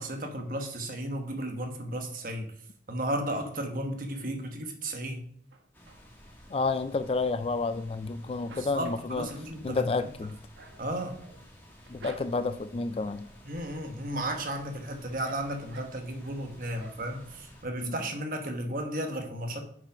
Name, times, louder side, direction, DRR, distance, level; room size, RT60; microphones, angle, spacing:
voice 1, 0.0-2.5 2.9-5.2 8.7-9.9 10.8-11.2 13.4-19.6, right 1 dB, 50° right, 4 dB, 1.2 m, -34 dB
sound 1, 5.5-6.3 6.7-8.0 8.3-12.7 13.2-13.6 13.9-16.4 16.7-17.4 17.8-17.9 18.2-18.3, right 2 dB, 85° right, 1.0 m, -51 dB
sound 2, 5.7-17.6, equal, 10° left, 1.4 m, -53 dB
voice 2, 6.5-9.3 9.6-10.4 11.9-13.3 17.8-18.0, left 3 dB, 30° left, 12 dB, 0.3 m, -30 dB
6.8 x 5.4 x 5.1 m, 0.64 s
head